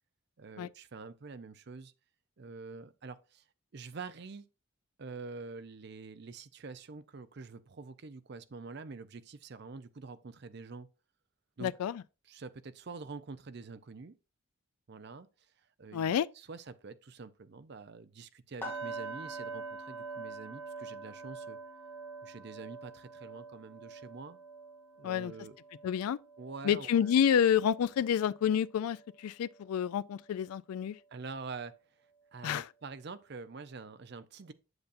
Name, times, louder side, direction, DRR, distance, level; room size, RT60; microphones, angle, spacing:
voice 1, 0.4-1.9 2.4-3.4 3.7-4.5 5.0-10.9 11.6-11.7 12.3-14.1 14.9-15.3 15.8-21.6 22.2-24.4 25.0-25.6 26.4-27.1 31.1-31.7 32.3-34.5, right 4 dB, 50° right, 0.5 m, -46 dB
voice 2, 11.6-12.0 15.9-16.3 25.0-25.3 25.8-26.2 26.6-31.0 32.4-32.7, left 8 dB, 90° left, 0.3 m, -29 dB
sound 1, 18.6-28.5 28.9-29.2 29.6-29.7, right 3 dB, 10° left, 2.6 m, -45 dB
7.9 x 6.8 x 2.5 m
head